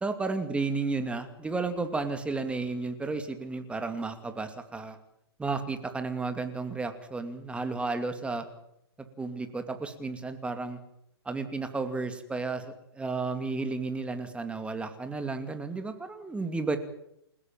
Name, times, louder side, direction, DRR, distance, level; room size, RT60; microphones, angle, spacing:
voice 1, 0.0-5.0 5.4-8.4 9.0-10.8 11.2-16.8, right 3 dB, 10° right, 8 dB, 2.6 m, -33 dB
29.5 x 16.5 x 7.6 m, 0.75 s
hypercardioid pair, 130°, 14 cm